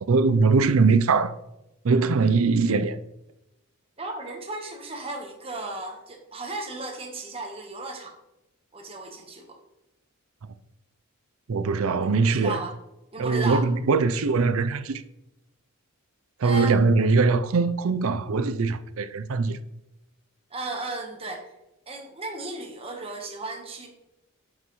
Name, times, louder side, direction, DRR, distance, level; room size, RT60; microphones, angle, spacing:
voice 1, 0.1-1.3 1.8-3.0 11.5-12.6 13.2-15.0 16.4-19.6, right 4 dB, 75° right, 0.5 m, -21 dB
voice 2, 4.0-8.2 8.7-9.6 12.0-12.7 13.1-13.7 16.4-16.8 20.5-21.5 21.9-23.9, right 2 dB, 25° right, 1.2 m, -35 dB
9.8 x 5.7 x 3.1 m
head